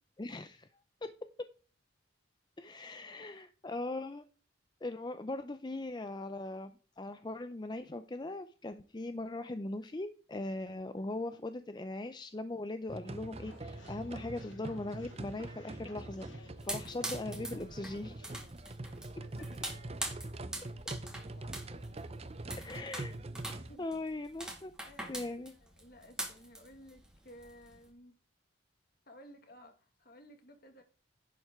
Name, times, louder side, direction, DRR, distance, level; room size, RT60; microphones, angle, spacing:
voice 1, 0.2-0.7 2.6-4.2 4.8-18.3 22.6-23.2 23.8-24.7 25.1-25.5, left 2 dB, 20° left, 0.5 m, -40 dB
sound 1, 12.9-23.8, right 2 dB, 30° right, 0.7 m, -44 dB
sound 2, 13.4-22.6, left 2 dB, 70° left, 1.8 m, -58 dB
sound 3, 16.6-27.9, right 1 dB, 5° right, 1.9 m, -44 dB
voice 2, 24.8-28.2 29.1-30.8, equal, 50° left, 1.9 m, -56 dB
11.0 x 7.9 x 3.6 m
head